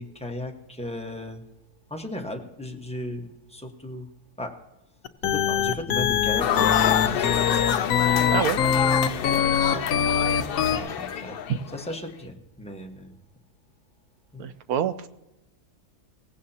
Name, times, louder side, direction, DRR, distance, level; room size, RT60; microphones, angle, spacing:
voice 1, 0.0-1.4 1.9-4.1 4.4-4.6 5.2-8.1 9.3-9.8 10.6-11.4 11.7-13.2 14.3-14.5, left 1 dB, 5° left, 2 dB, 1.1 m, -36 dB
sound 1, 5.1-10.8, left 8 dB, 65° left, 1.1 m, -22 dB
sound 2, 6.4-12.0, left 9 dB, 85° left, 0.5 m, -28 dB
voice 2, 14.4-15.1, right 9 dB, 70° right, 13 dB, 1.2 m, -26 dB
18.0 x 16.0 x 2.9 m, 0.97 s
omnidirectional pair, 1.7 m